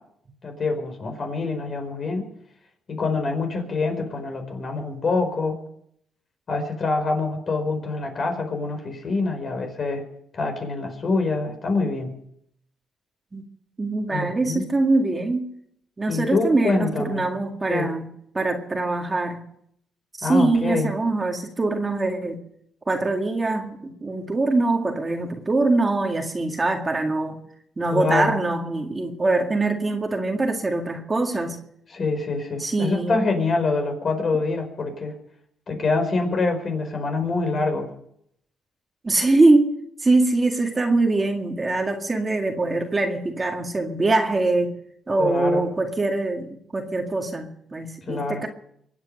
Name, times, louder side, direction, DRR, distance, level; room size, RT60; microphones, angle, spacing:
voice 1, 0.4-2.3 2.9-5.6 6.5-10.0 10.3-12.1 14.1-14.6 16.1-17.3 17.7-17.9 20.2-20.9 27.9-28.4 31.9-35.1 35.7-37.9 45.2-45.6 48.1-48.5, left 3 dB, 45° left, 4 dB, 4.9 m, -25 dB
voice 2, 13.8-15.4 16.0-18.1 18.3-19.4 20.2-22.4 22.9-27.4 27.8-31.6 32.6-33.2 39.0-44.7 45.1-48.5, right 2 dB, 25° right, 3 dB, 2.0 m, -23 dB
23.5 x 8.8 x 6.6 m, 0.72 s
cardioid pair, 90°, 0 cm